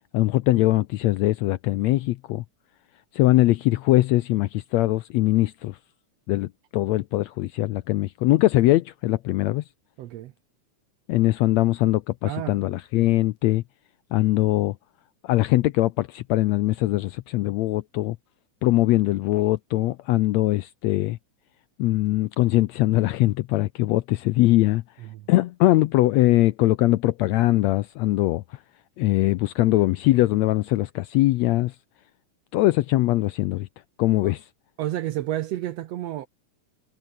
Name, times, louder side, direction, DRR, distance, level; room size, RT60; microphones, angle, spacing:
voice 1, 0.1-2.4 3.1-5.8 6.3-9.6 11.1-13.6 14.1-14.8 15.2-18.2 18.6-21.2 21.8-24.8 25.3-28.6 29.0-31.7 32.5-33.7 34.0-34.4, left 17 dB, 75° left, 1.6 m, -21 dB
voice 2, 10.0-10.3 12.2-12.6 25.0-25.3 34.2-34.3 34.8-36.3, right 13 dB, 75° right, 1.6 m, -30 dB
omnidirectional pair, 3.7 m